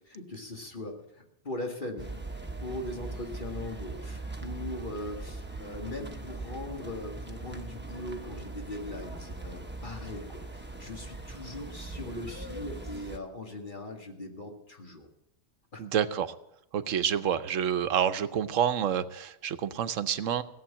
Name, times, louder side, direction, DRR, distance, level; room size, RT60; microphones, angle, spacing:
voice 1, 0.1-2.1 2.6-15.1 15.7-15.8, left 2 dB, 40° left, 1 dB, 2.2 m, -40 dB
sound 1, 2.0-13.2, right 2 dB, 10° right, 1.0 m, -40 dB
voice 2, 15.8-16.3 16.7-20.4, right 9 dB, 85° right, 12 dB, 1.1 m, -28 dB
17.0 x 7.6 x 8.7 m, 0.82 s
omnidirectional pair, 1.3 m